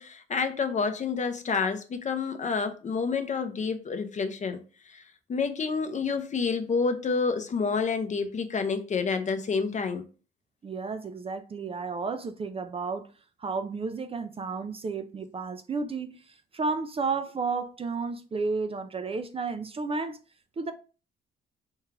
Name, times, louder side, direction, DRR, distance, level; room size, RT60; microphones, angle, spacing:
voice 1, 0.0-4.6 4.9-5.0 5.3-10.0, left 5 dB, 35° left, 0.6 m, -29 dB
voice 2, 10.6-13.1 13.4-20.2 20.6-20.7, right 4 dB, 30° right, 0.4 m, -32 dB
4.5 x 2.4 x 3.1 m
cardioid pair, 90°, 20 cm